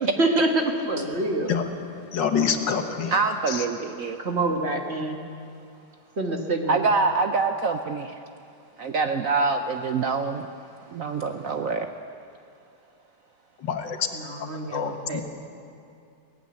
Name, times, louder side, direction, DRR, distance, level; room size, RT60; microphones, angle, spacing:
voice 1, 0.0-1.5 4.2-5.2 6.2-6.8 14.1-15.2, right 2 dB, 35° right, 4 dB, 1.6 m, -26 dB
voice 2, 2.1-3.2 3.5-3.7 13.6-15.2, left 7 dB, 70° left, 6 dB, 2.0 m, -27 dB
voice 3, 3.1-4.2 6.7-8.2 8.8-10.5 10.9-11.9, right 4 dB, 60° right, 7 dB, 1.0 m, -25 dB
18.0 x 15.0 x 9.5 m, 2.5 s
omnidirectional pair, 2.0 m